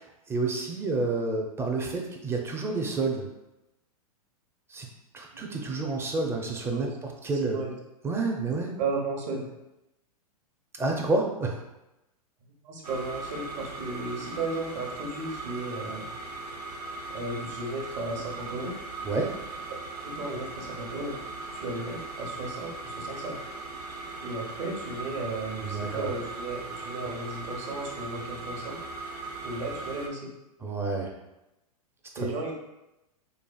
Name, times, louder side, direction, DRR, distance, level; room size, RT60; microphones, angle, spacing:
voice 1, 0.0-3.3 4.7-4.9 5.1-7.6 8.0-8.8 10.7-11.6 19.0-19.4 25.6-26.1 30.6-31.1 32.1-32.3, right 3 dB, 15° right, 1 dB, 0.5 m, -29 dB
voice 2, 7.4-7.7 8.8-9.5 12.6-16.1 17.1-18.7 20.0-21.2 21.5-23.4 24.2-28.8 29.4-30.3 32.2-32.5, right 2 dB, 50° right, -1 dB, 1.0 m, -34 dB
sound 1, 12.8-30.1, right 3 dB, 85° right, 0.7 m, -39 dB
5.2 x 2.4 x 2.3 m, 0.94 s
hypercardioid pair, 105°, 20 cm